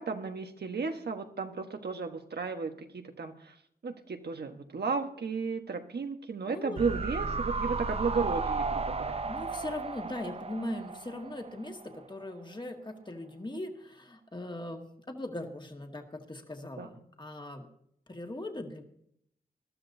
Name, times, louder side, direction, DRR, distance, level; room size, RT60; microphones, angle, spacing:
voice 1, 0.0-3.5 3.8-9.1 16.8-16.9, right 4 dB, 85° right, 5 dB, 1.3 m, -34 dB
voice 2, 6.5-6.8 9.2-17.7 18.1-18.8, left 1 dB, 30° left, 3 dB, 1.9 m, -40 dB
sound 1, 6.8-12.0 12.3-12.4, right 4 dB, 40° right, 0.6 m, -34 dB
21.0 x 12.5 x 2.7 m, 0.70 s
wide cardioid pair, 55°, 17 cm